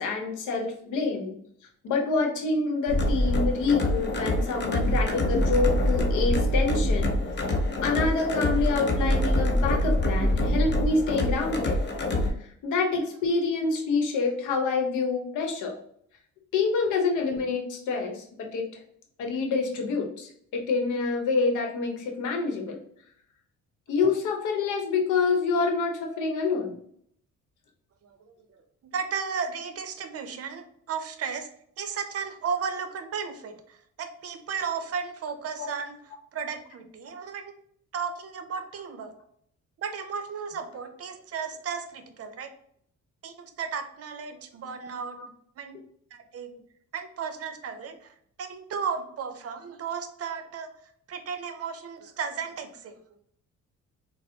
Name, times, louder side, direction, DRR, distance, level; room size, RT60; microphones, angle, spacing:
voice 1, 0.0-1.4 1.8-7.2 7.8-11.8 12.6-15.8 16.5-18.7 19.2-22.8 23.9-26.8 35.6-35.7 44.8-44.9, left 4 dB, 85° left, 2 dB, 0.8 m, -27 dB
sound 1, 2.9-12.3, left 1 dB, 35° left, 0.7 m, -25 dB
voice 2, 28.0-31.5 31.8-37.5 37.9-39.1 39.8-42.5 43.2-45.2 45.6-45.8 46.1-46.5 46.9-48.1 48.4-50.7 51.1-52.9, right 6 dB, 50° right, 8 dB, 0.6 m, -34 dB
4.2 x 2.0 x 2.7 m, 0.68 s
cardioid pair, 90°, 30 cm